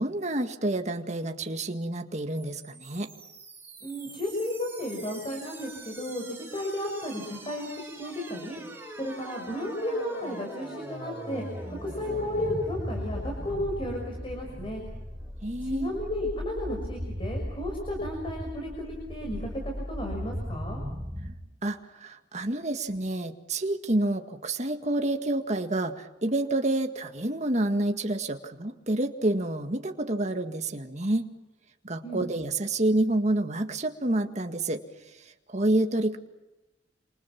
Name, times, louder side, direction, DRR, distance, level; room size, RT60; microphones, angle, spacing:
voice 1, 0.0-3.1 15.4-15.9 21.6-31.3 31.8-34.8 35.2-36.2, right 1 dB, 40° right, 5 dB, 1.9 m, -28 dB
sound 1, 2.3-21.3, equal, 10° right, 6.4 m, -39 dB
voice 2, 3.8-8.6 9.0-11.4 11.8-14.8 15.6-20.8 32.0-32.3, left 1 dB, 30° left, 1 dB, 6.2 m, -33 dB
28.0 x 28.0 x 6.0 m, 1.0 s
head